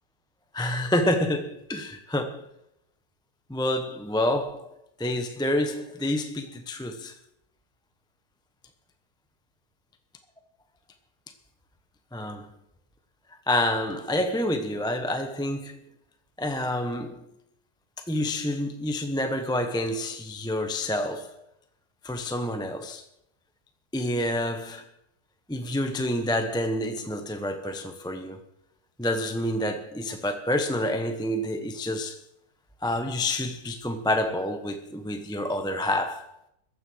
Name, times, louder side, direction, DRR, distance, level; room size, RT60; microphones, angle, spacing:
voice 1, 0.5-2.4 3.5-4.7 5.0-7.1 12.1-12.5 13.5-15.8 16.4-17.2 18.1-21.3 22.0-23.0 23.9-24.8 25.5-28.4 29.0-32.2 32.8-36.3, left 1 dB, 5° left, 0.8 m, -28 dB
15.0 x 10.5 x 6.2 m
omnidirectional pair, 1.7 m